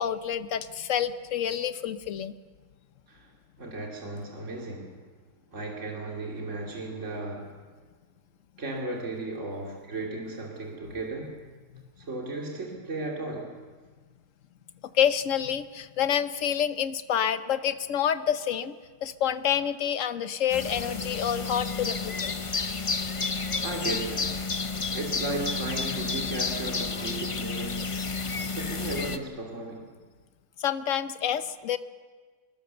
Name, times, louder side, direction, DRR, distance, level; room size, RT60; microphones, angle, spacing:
voice 1, 0.0-2.3 14.9-18.7 19.0-22.3 30.6-31.8, left 9 dB, 60° left, 12 dB, 1.2 m, -28 dB
voice 2, 3.6-5.0 5.5-7.5 8.6-11.3 12.0-13.5 23.6-24.4 24.9-27.9 28.4-29.9, right 2 dB, 50° right, -1 dB, 3.2 m, -35 dB
sound 1, 20.5-29.2, left 4 dB, 30° left, 0.7 m, -31 dB
24.0 x 21.0 x 6.9 m, 1.5 s
omnidirectional pair, 1.7 m